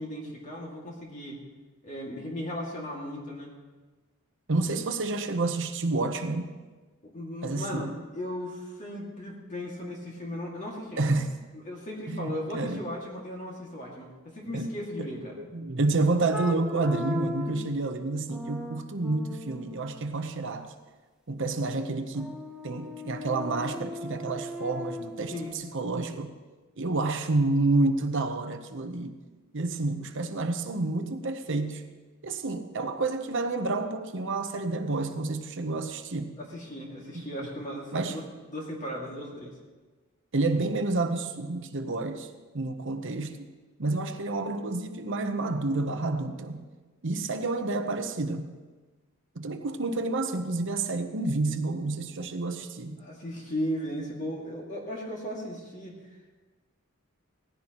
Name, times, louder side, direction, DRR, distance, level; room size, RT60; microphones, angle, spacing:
voice 1, 0.0-1.4 1.8-3.5 7.0-7.9 8.1-11.1 11.6-15.4 17.4-17.6 25.3-25.6 36.4-39.6 53.0-56.4, equal, 35° left, -3 dB, 2.2 m, -36 dB
voice 2, 4.5-6.5 7.4-8.0 11.0-11.3 12.1-12.8 14.5-14.7 15.0-20.7 21.3-22.3 22.6-26.3 26.8-29.2 29.5-31.8 32.2-36.4 37.3-37.5 37.9-38.2 40.3-42.3 42.5-43.4 43.8-46.7 47.0-48.5 49.3-53.0, right 3 dB, 60° right, 6 dB, 0.9 m, -29 dB
sound 1, 16.3-17.7 18.3-20.1 22.1-25.5, left 1 dB, 5° right, 0.8 m, -38 dB
18.5 x 15.0 x 3.0 m, 1.3 s
head